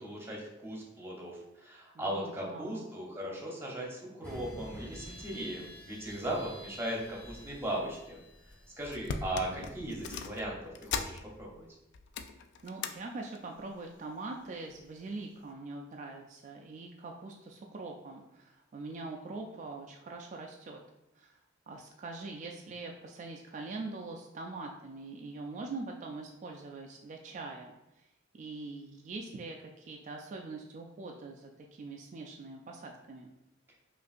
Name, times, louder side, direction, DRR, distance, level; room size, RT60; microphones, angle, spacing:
voice 1, 0.0-8.2 8.8-11.7, right 1 dB, 10° right, -3 dB, 0.8 m, -38 dB
voice 2, 1.9-2.8 12.6-20.8 21.2-21.4 21.7-28.1 28.3-33.3, right 3 dB, 40° right, 1 dB, 0.3 m, -43 dB
sound 1, 4.2-10.1, equal, 5° left, 1.1 m, -49 dB
sound 2, 8.4-8.6 8.9-11.6 11.9-13.0 13.3-13.7 14.5-14.9 15.4-15.5, left 5 dB, 60° left, 0.3 m, -39 dB
5.3 x 2.5 x 2.5 m, 0.92 s
head